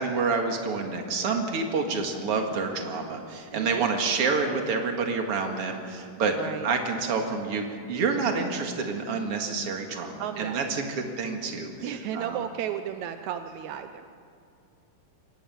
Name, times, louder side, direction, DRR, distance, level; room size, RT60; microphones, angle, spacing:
voice 1, 0.0-6.4 6.6-12.4, right 4 dB, 45° right, 3 dB, 2.5 m, -28 dB
voice 2, 3.5-3.9 6.4-6.7 10.2-10.7 11.8-14.0, right 10 dB, 75° right, 8 dB, 1.7 m, -34 dB
24.0 x 19.0 x 7.1 m, 2.4 s
omnidirectional pair, 4.1 m